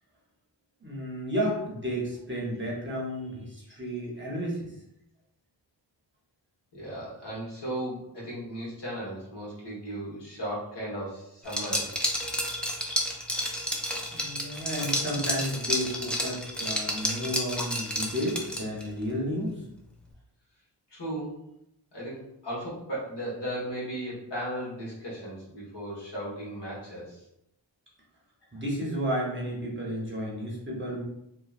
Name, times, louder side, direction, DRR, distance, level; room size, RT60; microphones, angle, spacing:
voice 1, 0.8-4.7 14.1-19.5 28.5-31.0, equal, 25° right, -4 dB, 0.8 m, -32 dB
voice 2, 6.7-11.9 17.0-17.1 20.9-21.4 21.9-27.2, right 1 dB, 65° left, -6 dB, 1.3 m, -36 dB
Liquid, 11.5-18.9, equal, 5° left, 0.4 m, -30 dB
3.1 x 2.2 x 2.4 m, 0.82 s
wide cardioid pair, 80°, 44 cm